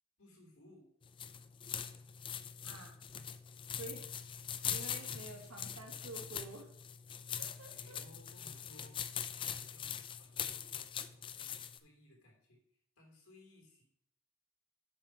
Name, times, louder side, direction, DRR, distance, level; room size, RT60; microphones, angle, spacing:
voice 1, 0.2-0.9 4.7-6.3 7.6-9.0 9.3-13.8, left 1 dB, 85° left, 0 dB, 3.2 m, -62 dB
sound 1, 1.0-11.8, left 8 dB, 25° left, 0.3 m, -42 dB
voice 2, 2.6-3.0 3.8-4.1 4.7-6.6 7.3-8.0, right 2 dB, 90° right, 2 dB, 1.6 m, -49 dB
7.2 x 6.2 x 4.5 m, 0.69 s
head